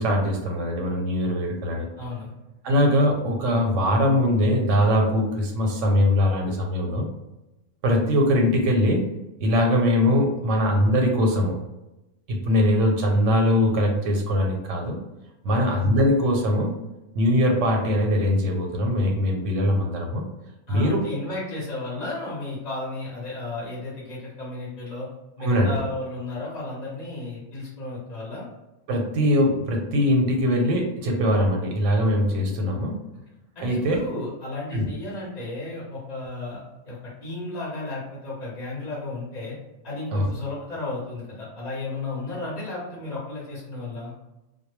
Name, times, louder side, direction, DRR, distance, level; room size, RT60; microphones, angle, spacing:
voice 1, 0.0-1.9 2.6-7.1 7.8-9.1 9.4-11.5 12.3-15.0 15.4-16.7 17.1-20.3 20.7-21.0 25.4-25.8 28.9-33.0 33.6-34.0 34.7-34.8 40.1-40.3, left 1 dB, 90° right, 2 dB, 0.9 m, -21 dB
voice 2, 2.0-2.3 15.5-15.8 20.7-25.1 25.4-28.5 33.5-36.6 36.8-39.5 39.8-44.1, left 2 dB, 40° left, -7 dB, 0.8 m, -33 dB
2.1 x 2.0 x 3.0 m, 0.96 s
omnidirectional pair, 1.2 m